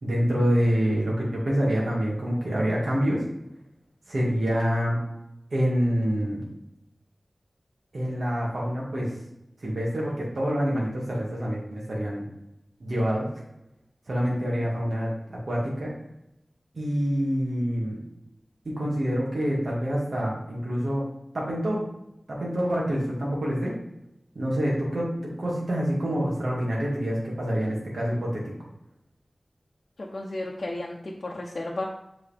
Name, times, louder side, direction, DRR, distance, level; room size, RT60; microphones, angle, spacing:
voice 1, 0.0-3.2 4.1-5.0 5.5-6.4 7.9-9.1 9.6-12.2 12.8-13.3 14.1-15.9 16.7-18.0 18.7-21.0 21.3-21.8 22.3-23.7 24.4-28.4, equal, 75° right, -5 dB, 1.9 m, -26 dB
voice 2, 30.0-31.8, left 2 dB, 60° left, -3 dB, 0.8 m, -33 dB
7.8 x 4.1 x 3.4 m, 0.85 s
wide cardioid pair, 70°, 0 cm